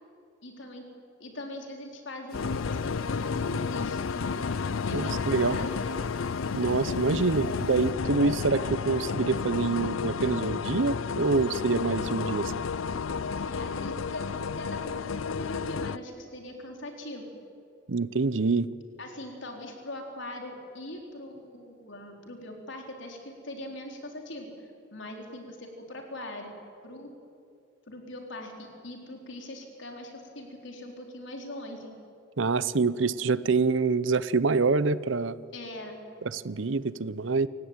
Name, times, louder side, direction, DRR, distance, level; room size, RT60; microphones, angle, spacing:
voice 1, 0.4-0.8 1.2-4.4 4.8-5.9 13.4-14.3 14.5-17.4 19.0-26.5 26.8-27.1 27.9-31.9 35.5-36.0, left 1 dB, 65° left, 2 dB, 4.1 m, -41 dB
sound 1, 2.3-16.0, left 5 dB, 85° left, 0.5 m, -31 dB
sound 2, 2.3-7.9, left 5 dB, 50° left, 1.9 m, -52 dB
voice 2, 4.9-5.6 6.5-12.5 17.9-18.7 32.4-35.4 36.2-37.5, right 4 dB, 70° right, 17 dB, 0.7 m, -26 dB
28.5 x 16.5 x 8.9 m, 2.4 s
head